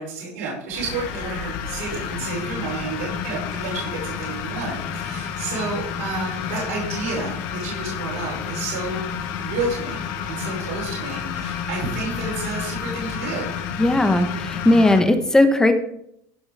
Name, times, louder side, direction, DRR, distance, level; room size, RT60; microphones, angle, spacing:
voice 1, 0.0-9.1 9.4-13.5, right 3 dB, 75° right, -4 dB, 5.3 m, -30 dB
sound 1, 0.7-15.0, left 8 dB, 60° left, 2.1 m, -30 dB
voice 2, 13.8-15.7, left 1 dB, 5° left, 8 dB, 1.3 m, -17 dB
16.0 x 5.9 x 4.9 m, 0.73 s
supercardioid pair, 125°, 8 cm